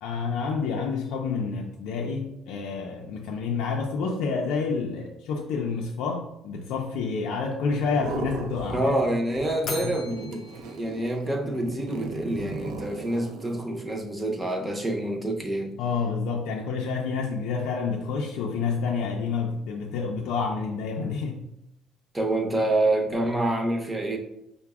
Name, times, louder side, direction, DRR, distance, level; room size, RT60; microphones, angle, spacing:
voice 1, 0.0-8.9 9.8-10.0 15.8-21.4, left 5 dB, 90° left, 0 dB, 0.4 m, -29 dB
sound 1, 7.8-9.0 9.3-13.6, right 3 dB, 80° right, 0.5 m, -37 dB
voice 2, 8.7-15.7 22.1-24.2, right 1 dB, 10° right, 1 dB, 0.6 m, -27 dB
Bell, 9.6-11.9, left 3 dB, 35° left, 0.5 m, -40 dB
5.7 x 2.1 x 3.4 m, 0.82 s
cardioid pair, 165°, 0 cm